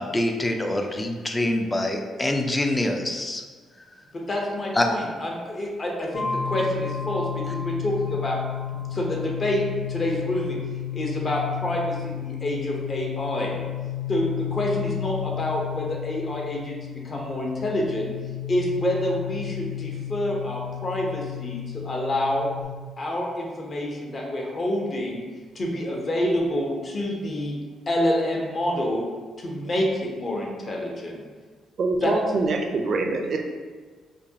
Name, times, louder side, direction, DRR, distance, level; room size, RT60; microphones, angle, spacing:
voice 1, 0.0-3.4 4.7-4.9, left 1 dB, 20° left, 4 dB, 0.4 m, -25 dB
voice 2, 4.1-8.4 8.7-9.6 9.9-10.6 10.9-13.6 14.1-18.1 18.5-22.5 23.0-25.2 25.5-27.6 27.9-29.0 29.4-31.2 32.0-32.1, left 1 dB, 40° left, -1 dB, 0.8 m, -27 dB
sound 1, 6.1-22.6, left 10 dB, 65° left, 1.3 m, -32 dB
voice 3, 31.8-33.4, right 3 dB, 55° right, 3 dB, 0.5 m, -24 dB
5.1 x 2.2 x 2.8 m, 1.5 s
cardioid pair, 90°, 0 cm